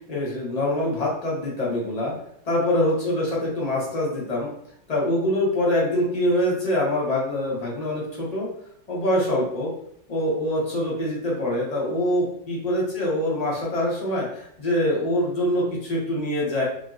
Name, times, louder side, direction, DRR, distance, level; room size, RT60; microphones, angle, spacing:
voice 1, 0.1-2.1 2.4-4.5 4.9-8.5 8.9-9.7 10.1-16.6, left 1 dB, 30° left, -4 dB, 0.8 m, -24 dB
3.1 x 2.8 x 2.4 m, 0.69 s
omnidirectional pair, 1.9 m